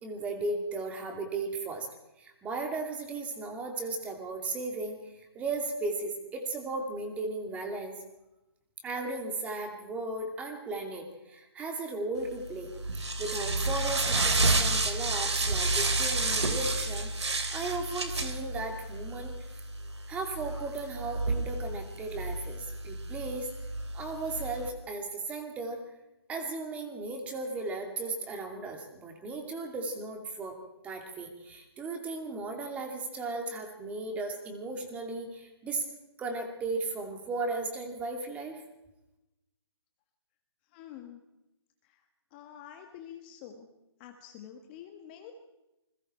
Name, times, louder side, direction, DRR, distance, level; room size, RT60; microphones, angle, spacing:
voice 1, 0.0-1.9 2.2-7.9 8.8-17.1 17.5-19.5 20.1-23.5 23.9-25.8 26.3-30.6 30.8-35.8 36.2-38.6, right 3 dB, 10° right, 4 dB, 2.6 m, -36 dB
sound 1, 12.3-24.7, right 2 dB, 85° right, 3.3 m, -31 dB
voice 2, 40.7-41.2 41.9-42.0 42.3-43.7 44.0-45.3, left 10 dB, 20° left, 5 dB, 1.5 m, -47 dB
28.0 x 21.5 x 4.4 m, 0.94 s
hypercardioid pair, 160°, 14 cm